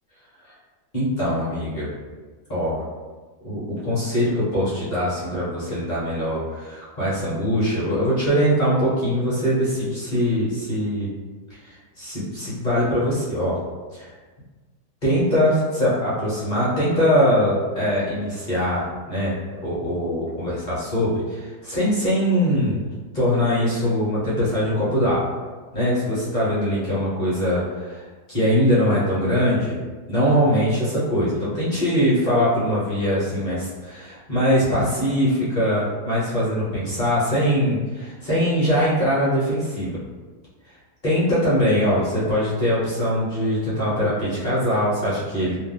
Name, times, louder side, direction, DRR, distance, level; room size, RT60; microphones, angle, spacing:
voice 1, 0.9-1.9 2.5-2.8 3.4-11.1 11.6-13.6 13.9-14.1 15.0-19.4 19.6-22.9 23.1-25.2 25.7-29.8 30.1-40.0 41.0-45.6, equal, 35° left, -10 dB, 0.9 m, -22 dB
2.8 x 2.0 x 3.3 m, 1.3 s
omnidirectional pair, 1.7 m